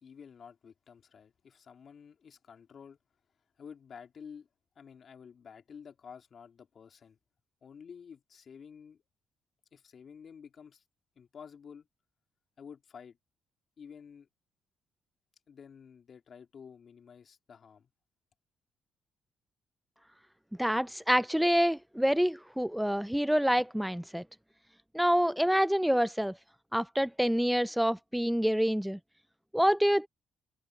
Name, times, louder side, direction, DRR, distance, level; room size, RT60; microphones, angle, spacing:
voice 1, 0.0-3.0 3.6-4.5 4.8-7.2 7.6-9.0 9.7-10.8 11.2-11.9 12.6-13.2 13.8-14.3 15.5-17.9, left 6 dB, 50° left, 2.7 m, -51 dB
voice 2, 20.6-24.2 24.9-26.3 26.7-29.0 29.5-30.1, equal, ahead, 0.3 m, -27 dB
cardioid pair, 90°, 0 cm